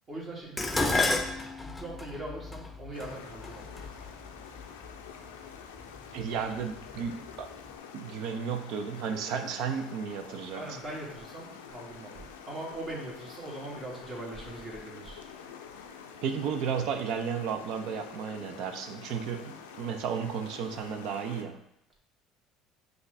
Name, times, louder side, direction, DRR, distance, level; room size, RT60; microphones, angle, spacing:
voice 1, 0.1-1.1 1.6-3.7 10.6-12.1 12.5-15.2, right 1 dB, 40° right, -3 dB, 1.6 m, -41 dB
Dishes pots and pans, 0.6-4.9 5.8-6.2 6.6-7.4 7.7-7.8, left 2 dB, 15° left, 0.5 m, -32 dB
sound 1, 2.9-21.4, left 7 dB, 85° left, 0.4 m, -47 dB
voice 2, 6.1-7.5 7.9-10.8 16.2-21.6, right 7 dB, 65° right, 8 dB, 0.4 m, -33 dB
5.8 x 2.6 x 3.2 m, 0.79 s
hypercardioid pair, 70°, 0 cm